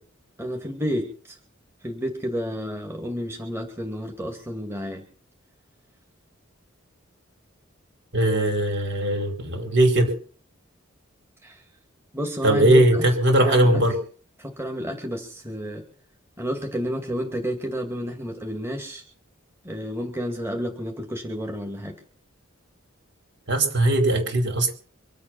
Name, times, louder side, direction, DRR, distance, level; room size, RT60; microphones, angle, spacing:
voice 1, 0.4-1.4 1.8-5.0 11.4-11.6 12.1-13.0 13.4-13.8 14.4-15.8 16.4-19.0 19.6-21.9, equal, 10° right, 2 dB, 2.4 m, -31 dB
voice 2, 8.1-10.1 12.4-13.9 23.5-24.7, right 1 dB, 60° right, 4 dB, 4.6 m, -19 dB
24.5 x 8.5 x 5.9 m, 0.43 s
head